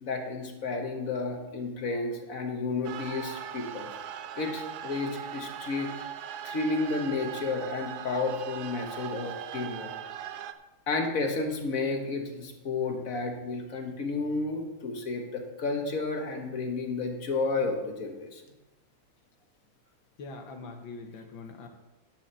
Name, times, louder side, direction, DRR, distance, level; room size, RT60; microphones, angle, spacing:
voice 1, 0.0-3.9 4.3-5.9 6.4-9.9 10.9-18.4, left 3 dB, 45° left, 3 dB, 1.5 m, -31 dB
sound 1, 2.8-10.5, right 9 dB, 80° right, 0.9 m, -39 dB
voice 2, 20.2-21.7, left 3 dB, 70° left, 5 dB, 1.9 m, -43 dB
10.5 x 5.0 x 7.4 m, 1.0 s
omnidirectional pair, 2.2 m